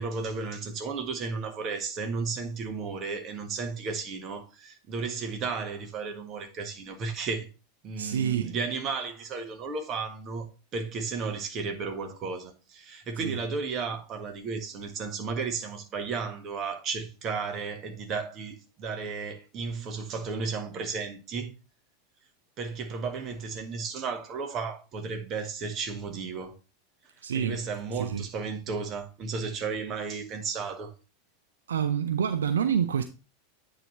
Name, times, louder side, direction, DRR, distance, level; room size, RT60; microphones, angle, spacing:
voice 1, 0.0-7.5 7.8-10.5 10.7-21.5 22.6-26.5 27.3-30.9, right 4 dB, 35° right, 1.6 m, -34 dB
voice 2, 8.0-8.5 13.2-13.4 27.2-27.6 27.9-28.3 31.7-33.0, right 8 dB, 75° right, 0.4 m, -27 dB
9.0 x 3.4 x 4.3 m
figure-of-eight pair, 90°, 0 cm